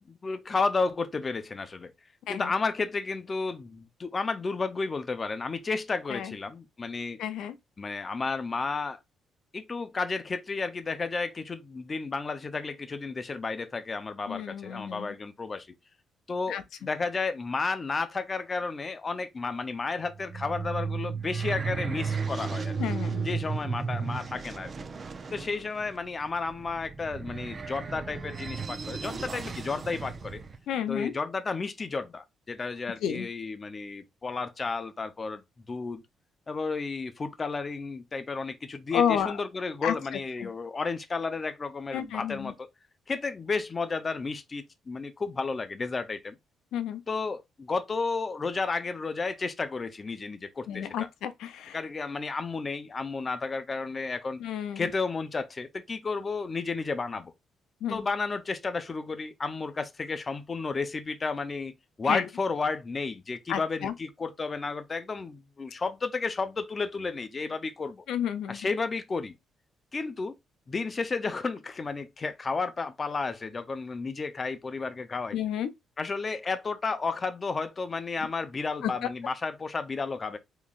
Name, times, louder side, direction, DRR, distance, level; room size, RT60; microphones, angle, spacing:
voice 1, 0.1-1.9 2.3-7.2 7.8-9.0 9.5-15.7 16.3-22.8 23.2-24.7 25.3-30.4 30.9-35.4 35.7-36.0 36.5-42.7 43.1-46.4 47.1-51.1 51.7-54.4 54.8-57.3 57.9-61.7 62.0-68.1 68.5-69.3 69.9-70.4 70.7-75.4 76.0-80.4, left 4 dB, 35° left, 0.6 m, -32 dB
voice 2, 7.2-7.5 14.3-15.1 16.5-16.6 22.8-23.2 30.7-31.1 33.0-33.3 38.9-39.3 39.8-39.9 40.4-40.5 41.9-42.5 46.7-47.0 50.7-51.8 54.4-54.9 57.8-58.0 62.1-62.2 63.5-63.9 68.1-68.6 75.3-75.7 78.8-78.9, left 9 dB, 80° left, 0.6 m, -30 dB
sound 1, 20.1-30.6, right 5 dB, 40° right, 0.7 m, -34 dB
3.8 x 3.0 x 2.5 m
cardioid pair, 90°, 0 cm